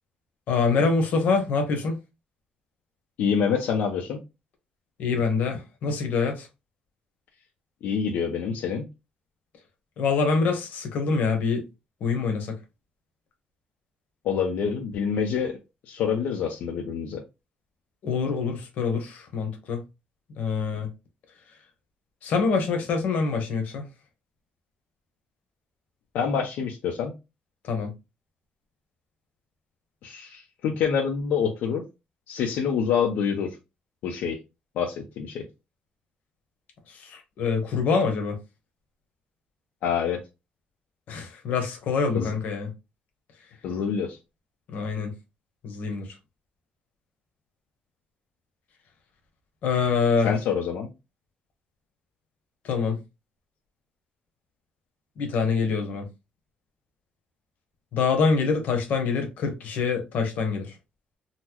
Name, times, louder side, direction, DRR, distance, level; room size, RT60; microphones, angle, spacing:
voice 1, 0.5-2.0 5.0-6.5 10.0-11.6 12.0-12.5 18.0-19.8 20.4-20.9 22.2-23.8 27.6-27.9 36.9-38.4 41.1-42.7 44.7-45.1 45.6-46.1 49.6-50.3 52.6-53.0 55.2-56.0 57.9-60.7, left 5 dB, 65° left, 1.0 m, -25 dB
voice 2, 3.2-4.2 7.8-8.9 14.2-15.6 15.9-17.2 26.1-27.1 30.0-31.8 32.3-33.6 34.0-34.4 34.8-35.4 39.8-40.2 42.1-42.3 43.6-44.2 50.2-50.9, left 7 dB, 85° left, 0.6 m, -26 dB
3.9 x 2.1 x 2.9 m
cardioid pair, 165°, 3 cm